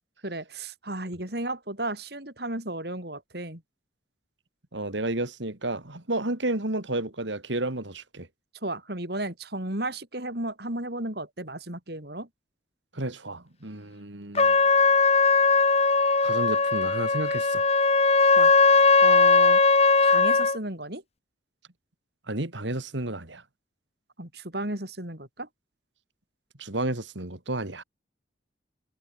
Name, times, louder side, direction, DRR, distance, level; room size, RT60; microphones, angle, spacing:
voice 1, 0.2-3.6 8.6-12.3 18.4-18.5 19.0-19.6 20.0-21.0 24.2-25.5, right 1 dB, 55° right, 5.0 m, -34 dB
voice 2, 4.7-8.3 12.9-14.6 16.2-17.6 22.3-23.4 26.6-27.8, right 2 dB, 75° right, 2.7 m, -31 dB
Trumpet, 14.4-20.6, left 4 dB, 35° left, 1.8 m, -19 dB
head